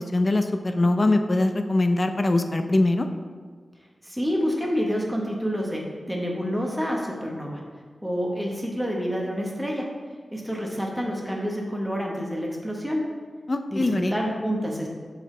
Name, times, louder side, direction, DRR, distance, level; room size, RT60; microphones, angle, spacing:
voice 1, 0.0-3.1 13.5-14.1, left 2 dB, 40° left, 7 dB, 0.4 m, -22 dB
voice 2, 4.0-7.6 8.0-9.9 10.3-13.1 13.7-14.9, equal, 5° right, -2 dB, 1.2 m, -28 dB
7.0 x 5.0 x 3.3 m, 1.5 s
wide cardioid pair, 90°, 0 cm